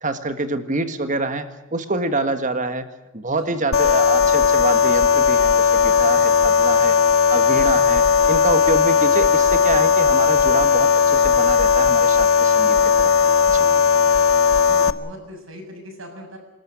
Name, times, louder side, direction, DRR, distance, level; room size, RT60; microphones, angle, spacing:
voice 1, 0.0-2.8 3.1-6.9 7.3-13.1 13.5-13.7, right 2 dB, 35° right, 9 dB, 1.7 m, -26 dB
voice 2, 3.3-3.6 13.6-14.0 14.6-16.4, equal, 75° right, 3 dB, 7.0 m, -41 dB
sound 1, 3.7-14.9, left 6 dB, 75° left, 0.9 m, -16 dB
27.0 x 13.5 x 9.9 m, 1.0 s
head